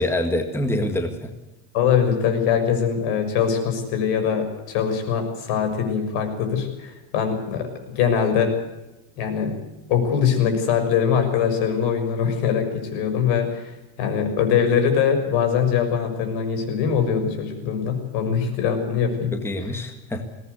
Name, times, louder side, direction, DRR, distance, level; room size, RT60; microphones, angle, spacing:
voice 1, 0.0-1.3 19.3-20.2, left 1 dB, 5° left, 5 dB, 1.8 m, -25 dB
voice 2, 1.7-7.7 7.9-8.5 9.2-9.6 9.9-13.7 14.0-19.4, left 7 dB, 75° left, 6 dB, 6.5 m, -22 dB
21.5 x 18.5 x 8.3 m, 1.0 s
cardioid pair, 165°, 47 cm